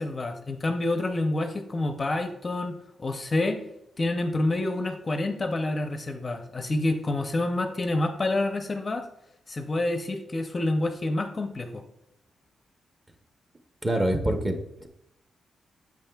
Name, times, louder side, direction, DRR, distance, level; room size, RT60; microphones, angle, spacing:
voice 1, 0.0-3.6 4.0-9.1 9.5-11.8, left 2 dB, 25° left, 6 dB, 0.5 m, -28 dB
voice 2, 13.8-14.9, right 1 dB, 15° right, 5 dB, 0.6 m, -26 dB
8.9 x 7.4 x 2.2 m, 0.80 s
wide cardioid pair, 165°, 0 cm